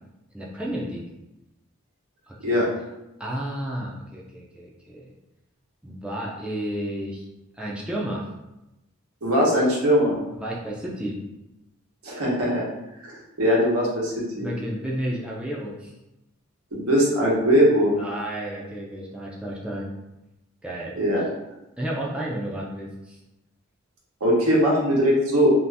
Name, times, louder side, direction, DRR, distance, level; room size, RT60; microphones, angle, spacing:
voice 1, 0.3-1.1 2.3-2.7 3.2-5.1 5.8-7.3 7.5-8.2 10.4-11.2 14.4-15.9 18.0-19.9 20.6-21.0 21.8-23.2, right 1 dB, 5° right, -4 dB, 0.4 m, -32 dB
voice 2, 9.2-10.2 12.0-12.7 13.0-14.5 16.7-18.0 21.0-21.2 24.2-25.5, equal, 85° right, -4 dB, 1.0 m, -20 dB
2.6 x 2.4 x 3.3 m, 0.94 s
head